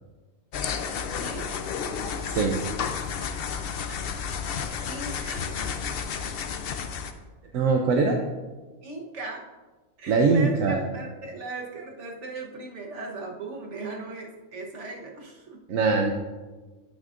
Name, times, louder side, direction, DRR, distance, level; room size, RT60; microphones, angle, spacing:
sound 1, 0.5-7.1, left 6 dB, 60° left, 0.7 m, -31 dB
voice 1, 1.2-1.5 3.9-4.0 4.8-5.7 8.8-9.4 10.0-15.6, right 3 dB, 60° right, 0 dB, 1.4 m, -38 dB
voice 2, 2.2-2.6 7.5-8.2 10.1-10.8 15.7-16.1, right 4 dB, 75° right, 2 dB, 1.1 m, -22 dB
9.0 x 8.7 x 2.5 m, 1.3 s
omnidirectional pair, 1.4 m